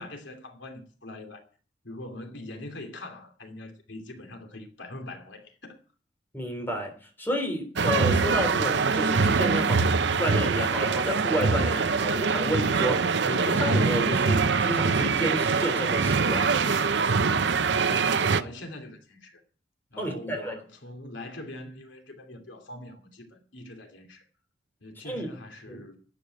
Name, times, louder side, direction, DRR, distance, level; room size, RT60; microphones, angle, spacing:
voice 1, 0.0-1.4 1.8-5.8 17.8-19.4 19.9-24.2 24.8-26.0, left 1 dB, 80° left, 2.8 m, -42 dB
voice 2, 6.3-9.9 10.2-16.4 20.0-20.6 25.0-25.3 25.7-25.8, equal, 10° left, 3.5 m, -31 dB
sound 1, 7.8-18.4, right 4 dB, 70° right, 0.7 m, -24 dB
11.5 x 8.8 x 9.2 m
head